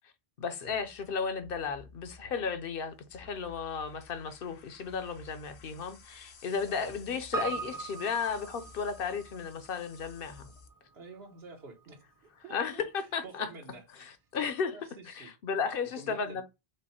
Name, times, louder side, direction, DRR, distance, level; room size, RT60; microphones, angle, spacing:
voice 1, 0.4-10.5 12.5-13.5 14.3-14.7 15.2-16.4, left 6 dB, 65° left, 0.8 m, -34 dB
sound 1, 0.7-10.7, left 4 dB, 80° left, 1.1 m, -55 dB
Piano, 7.3-11.8 12.1-12.2, right 4 dB, 25° right, 0.5 m, -40 dB
voice 2, 10.9-12.0 12.4-12.8 13.2-13.8 14.7-15.3 16.0-16.4, right 3 dB, 75° right, 1.3 m, -48 dB
5.2 x 2.0 x 4.1 m
omnidirectional pair, 1.1 m